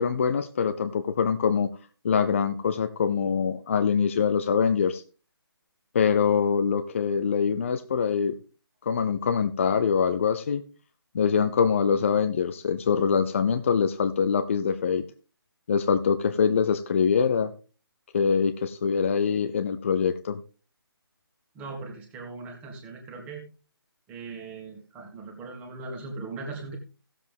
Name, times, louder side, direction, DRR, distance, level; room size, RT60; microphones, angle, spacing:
voice 1, 0.0-1.7 2.0-5.0 5.9-8.3 8.8-10.6 11.1-15.0 15.7-17.5 18.1-20.4, left 6 dB, 30° left, 10 dB, 0.6 m, -24 dB
voice 2, 21.6-23.4 24.1-26.8, right 3 dB, 10° right, 2 dB, 1.8 m, -39 dB
16.0 x 7.4 x 3.5 m, 0.36 s
figure-of-eight pair, 160°, 13 cm